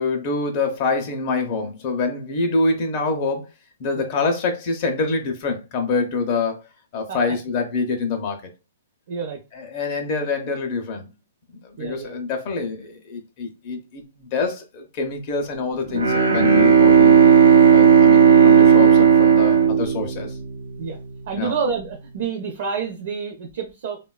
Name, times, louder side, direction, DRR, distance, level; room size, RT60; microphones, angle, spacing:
voice 1, 0.0-3.5 3.8-6.6 6.9-8.5 9.5-11.1 11.5-17.2 17.7-20.4 21.4-21.5, left 3 dB, 30° left, 0.5 m, -25 dB
voice 2, 9.1-9.4 11.8-12.2 20.8-21.0 21.3-24.0, right 6 dB, 45° right, 0.6 m, -28 dB
Bowed string instrument, 15.9-20.8, right 7 dB, 90° right, 0.5 m, -13 dB
3.3 x 2.1 x 2.3 m
hypercardioid pair, 170°, 0 cm